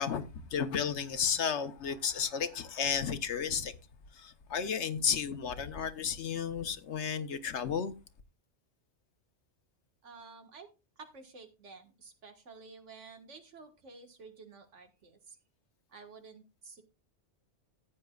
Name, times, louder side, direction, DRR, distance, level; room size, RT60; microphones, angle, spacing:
voice 1, 0.0-3.7 4.2-7.9, left 7 dB, 70° left, 1.1 m, -33 dB
voice 2, 10.0-10.7 11.0-15.4 15.9-16.8, right 4 dB, 85° right, 1.9 m, -52 dB
14.5 x 8.7 x 2.3 m
omnidirectional pair, 1.2 m